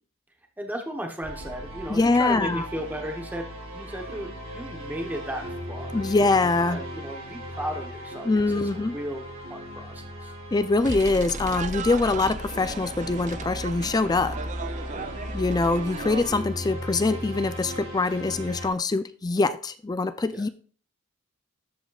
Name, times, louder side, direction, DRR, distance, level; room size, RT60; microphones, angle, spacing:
voice 1, 0.6-5.4 5.7-6.0 6.7-9.2 9.5-10.3 14.9-15.1 20.3-20.4, equal, 10° right, 3 dB, 1.0 m, -35 dB
sound 1, 1.2-18.7, equal, 80° right, 3.1 m, -37 dB
voice 2, 1.9-2.6 5.9-6.8 8.2-9.0 10.5-14.4 15.3-20.5, left 3 dB, 20° left, 12 dB, 0.3 m, -24 dB
sound 2, 10.8-16.2, right 5 dB, 35° right, 0.5 m, -37 dB
13.0 x 5.1 x 2.4 m, 0.41 s
head